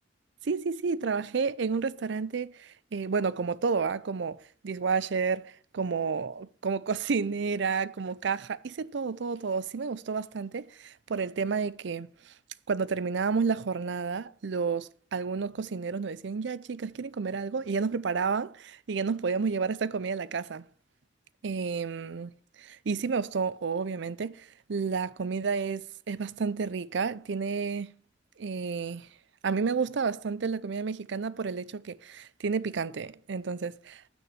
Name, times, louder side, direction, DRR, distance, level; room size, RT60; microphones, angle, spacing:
voice 1, 0.4-12.3 12.7-20.6 21.4-22.3 22.6-27.9 28.4-29.1 29.4-34.1, right 5 dB, 65° right, 0.5 m, -31 dB
9.4 x 6.2 x 7.2 m
head